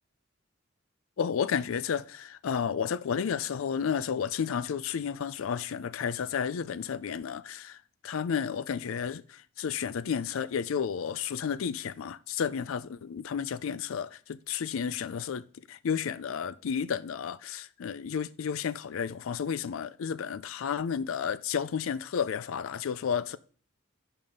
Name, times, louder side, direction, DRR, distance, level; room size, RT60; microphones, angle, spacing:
voice 1, 1.2-7.8 8.0-23.4, left 7 dB, 85° left, 0.4 m, -32 dB
5.1 x 4.7 x 5.4 m
head